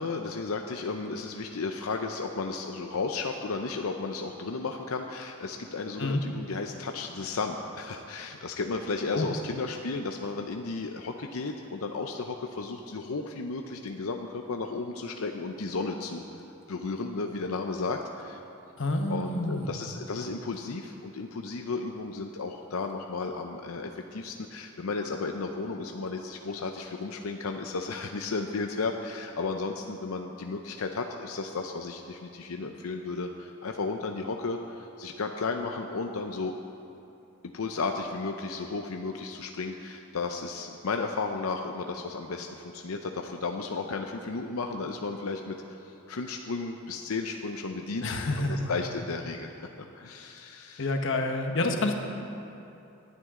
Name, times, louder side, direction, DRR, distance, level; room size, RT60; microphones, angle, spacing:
voice 1, 0.0-16.2 16.7-18.4 19.1-36.6 37.4-45.6 46.1-49.5 49.8-50.9, left 4 dB, 90° left, 4 dB, 0.6 m, -34 dB
voice 2, 18.8-19.7 48.0-48.7 50.8-51.9, left 2 dB, 60° left, 4 dB, 1.2 m, -28 dB
19.0 x 11.0 x 3.8 m, 2.8 s
head